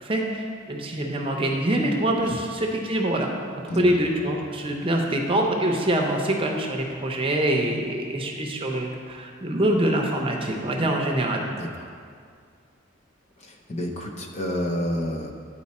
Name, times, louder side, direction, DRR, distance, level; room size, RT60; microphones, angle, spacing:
voice 1, 0.0-3.3 3.6-11.4, right 1 dB, 30° right, 1 dB, 0.6 m, -25 dB
voice 2, 13.7-15.3, equal, 35° left, 2 dB, 0.6 m, -28 dB
9.5 x 4.4 x 4.2 m, 2.2 s
head